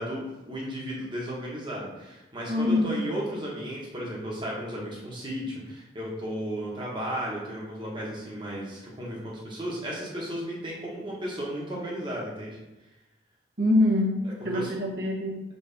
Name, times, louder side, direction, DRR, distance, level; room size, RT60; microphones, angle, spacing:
voice 1, 0.0-12.6 14.5-14.7, equal, 25° right, -4 dB, 1.3 m, -34 dB
voice 2, 2.5-3.0 13.6-15.4, left 1 dB, 55° right, -2 dB, 1.1 m, -25 dB
6.4 x 4.2 x 3.5 m, 1.0 s
head